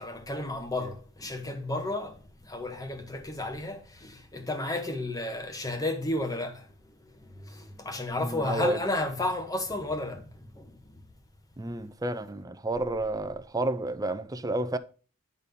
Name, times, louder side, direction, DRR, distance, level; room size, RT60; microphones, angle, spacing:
voice 1, 0.0-6.7 7.2-10.7, left 2 dB, 15° left, 1.1 m, -33 dB
voice 2, 8.2-8.8 11.6-14.8, right 2 dB, 15° right, 0.5 m, -30 dB
10.5 x 4.2 x 5.2 m
head